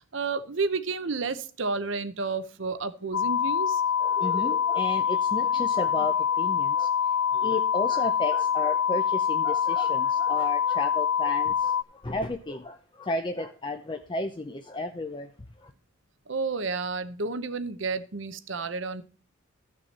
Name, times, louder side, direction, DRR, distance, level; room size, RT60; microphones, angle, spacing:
voice 1, 0.0-3.8 16.3-19.0, right 4 dB, 65° right, 12 dB, 0.9 m, -31 dB
sound 1, 3.1-11.8, left 8 dB, 70° left, 0.4 m, -25 dB
voice 2, 4.0-6.9 7.3-15.3 15.6-15.7, left 2 dB, 25° left, 5 dB, 0.6 m, -33 dB
14.0 x 6.3 x 4.2 m, 0.40 s
head